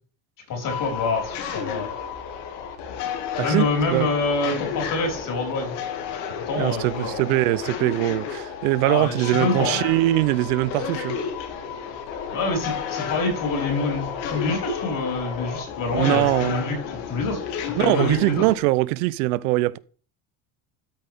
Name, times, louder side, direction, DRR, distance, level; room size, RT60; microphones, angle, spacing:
voice 1, 0.5-1.9 3.4-5.7 6.5-7.2 8.8-9.8 12.3-18.5, left 3 dB, 50° left, 4.5 m, -26 dB
sound 1, 0.6-18.6, left 7 dB, 75° left, 2.1 m, -32 dB
voice 2, 3.4-4.1 6.6-11.2 15.9-16.6 17.8-19.8, right 18 dB, 90° right, 0.6 m, -22 dB
13.0 x 5.4 x 3.5 m
supercardioid pair, 105°, 42 cm